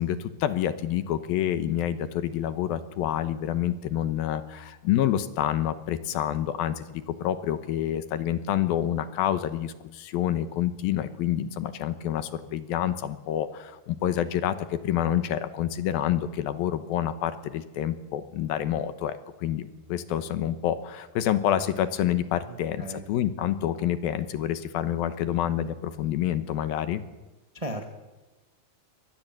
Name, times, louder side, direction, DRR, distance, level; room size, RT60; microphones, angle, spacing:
voice 1, 0.0-27.0, left 11 dB, 75° left, 11 dB, 2.8 m, -28 dB
voice 2, 22.5-23.0 27.5-27.9, right 1 dB, 25° right, 4 dB, 0.7 m, -36 dB
24.0 x 20.0 x 7.8 m, 1.1 s
omnidirectional pair, 4.4 m